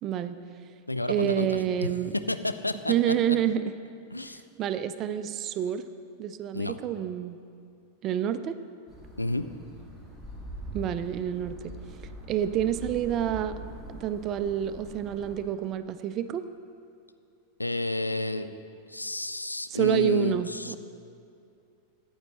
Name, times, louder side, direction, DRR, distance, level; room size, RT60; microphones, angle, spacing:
voice 1, 0.0-0.4 1.1-2.1 2.9-3.6 4.6-5.9 6.2-7.4 8.0-8.6 10.7-11.7 12.3-13.5 13.9-16.4 19.7-20.8, right 10 dB, 35° right, 11 dB, 0.4 m, -28 dB
voice 2, 0.9-1.9 2.3-3.4 4.1-4.4 6.5-6.8 9.2-9.5 17.6-18.5 18.9-20.8, left 2 dB, 85° left, 11 dB, 0.4 m, -30 dB
sound 1, 8.9-15.4, equal, 15° left, 2.0 m, -43 dB
14.0 x 8.8 x 2.9 m, 2.5 s
figure-of-eight pair, 90°, 0 cm